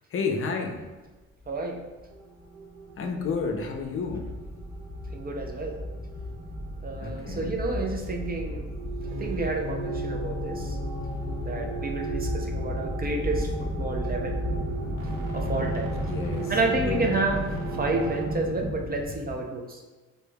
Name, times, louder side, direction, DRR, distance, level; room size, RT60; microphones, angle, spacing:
voice 1, 0.1-0.9 3.0-4.3 7.0-7.6 16.1-17.1, left 4 dB, 45° left, 3 dB, 0.5 m, -31 dB
voice 2, 1.5-1.8 5.1-5.8 6.8-8.6 9.2-10.8 11.4-14.4 15.3-15.9 16.5-19.8, right 2 dB, 30° right, 2 dB, 0.4 m, -30 dB
sound 1, 2.0-2.1 2.4-2.5 2.7-19.4, left 1 dB, ahead, 1.0 m, -33 dB
sound 2, 2.1-18.3, right 6 dB, 85° right, 0.6 m, -40 dB
sound 3, 8.8-14.8, left 6 dB, 65° right, 1.0 m, -42 dB
4.4 x 2.7 x 2.2 m, 1.2 s
cardioid pair, 90°, 30 cm